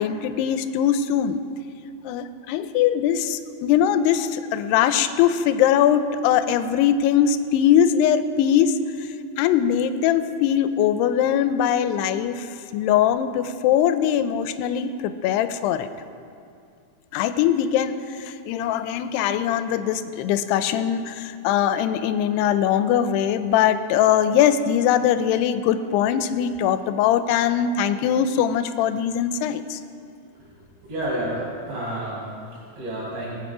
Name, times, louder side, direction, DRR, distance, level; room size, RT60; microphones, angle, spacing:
voice 1, 0.0-1.4 2.0-8.8 9.4-12.5 12.7-15.9 17.1-29.8, left 9 dB, 90° left, 10 dB, 2.7 m, -21 dB
voice 2, 30.8-33.3, right 1 dB, 55° right, -8 dB, 5.0 m, -30 dB
20.0 x 8.8 x 4.9 m, 2.4 s
omnidirectional pair, 4.7 m